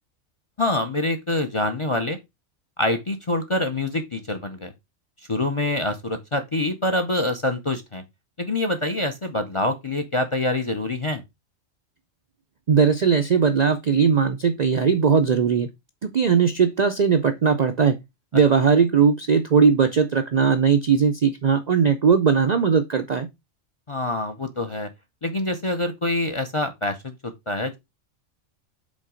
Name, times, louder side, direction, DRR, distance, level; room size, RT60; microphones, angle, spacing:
voice 1, 0.6-2.2 2.8-4.7 5.3-8.0 8.4-11.2 23.9-24.9 25.2-27.8, left 2 dB, 35° left, 0.5 m, -25 dB
voice 2, 12.7-15.7 16.0-18.0 18.3-23.3, right 6 dB, 55° right, 0.5 m, -19 dB
5.3 x 3.9 x 4.9 m
omnidirectional pair, 1.3 m